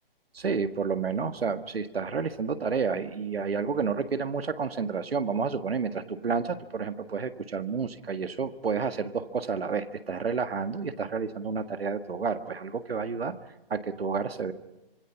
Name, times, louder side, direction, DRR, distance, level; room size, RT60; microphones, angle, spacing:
voice 1, 0.3-13.4 13.7-14.5, right 5 dB, 90° right, 10 dB, 1.7 m, -30 dB
26.0 x 23.0 x 5.9 m, 0.99 s
hypercardioid pair, 155°, 29 cm